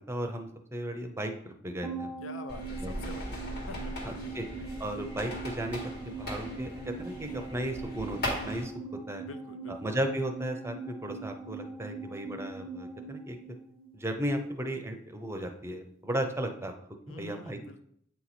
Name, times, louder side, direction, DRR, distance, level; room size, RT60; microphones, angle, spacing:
voice 1, 0.1-2.1 2.8-2.9 4.1-4.5 4.8-8.7 9.1-9.3 9.7-13.4 13.9-16.7 17.1-17.8, right 1 dB, 15° right, 5 dB, 0.6 m, -35 dB
sound 1, 1.8-14.4 14.6-14.7, right 4 dB, 5° left, 1.2 m, -42 dB
voice 2, 2.2-4.4 9.2-9.9 17.1-17.8, left 4 dB, 85° left, 8 dB, 0.6 m, -46 dB
sound 2, 2.5-8.6, equal, 55° left, 1.7 m, -39 dB
8.3 x 3.0 x 4.1 m, 0.68 s
head